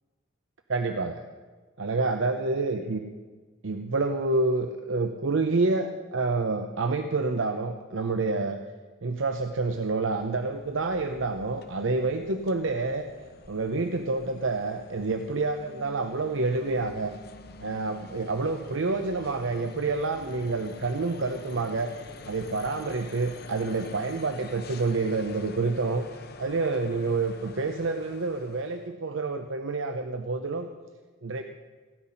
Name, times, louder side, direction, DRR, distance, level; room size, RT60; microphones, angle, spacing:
voice 1, 0.7-1.2 1.8-3.0 3.6-8.6 9.0-13.1 13.5-17.1 17.6-21.9 22.3-30.7 31.2-31.4, right 3 dB, 70° right, 7 dB, 0.7 m, -28 dB
sound 1, 9.1-28.9, left 3 dB, 50° left, 0.9 m, -48 dB
17.0 x 5.9 x 9.9 m, 1.4 s
head